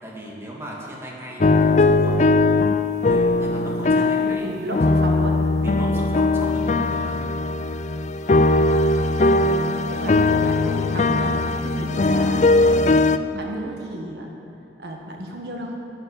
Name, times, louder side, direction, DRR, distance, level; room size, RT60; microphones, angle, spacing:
voice 1, 0.0-2.4 3.0-4.8 5.6-7.3 8.9-9.3, equal, 15° right, -3 dB, 1.9 m, -37 dB
sound 1, 1.4-4.4 4.7-13.2, left 2 dB, 40° left, 0.4 m, -19 dB
voice 2, 3.8-5.4 9.3-14.3 14.8-15.8, equal, 65° right, 1 dB, 1.4 m, -33 dB
11.5 x 7.5 x 9.8 m, 3.0 s
head